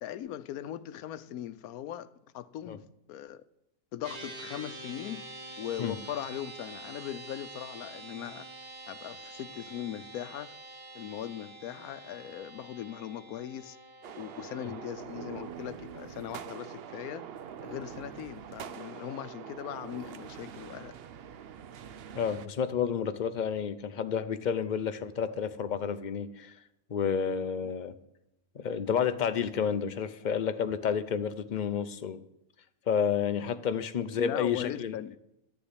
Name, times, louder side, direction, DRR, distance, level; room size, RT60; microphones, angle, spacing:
voice 1, 0.0-2.1 2.3-3.4 3.9-5.2 5.6-8.5 8.9-10.5 10.9-13.8 14.1-17.3 17.6-20.9 34.2-35.2, left 11 dB, 85° left, 1.1 m, -39 dB
sound 1, 4.0-14.9, right 2 dB, 85° right, 2.4 m, -46 dB
sound 2, 14.0-22.5, right 8 dB, 60° right, 0.7 m, -45 dB
sound 3, 15.1-20.7, right 6 dB, 35° right, 1.2 m, -52 dB
voice 2, 22.1-26.5 26.9-27.9 28.5-32.2 32.9-34.9, left 7 dB, 40° left, 0.7 m, -30 dB
11.0 x 7.0 x 9.7 m
omnidirectional pair, 1.5 m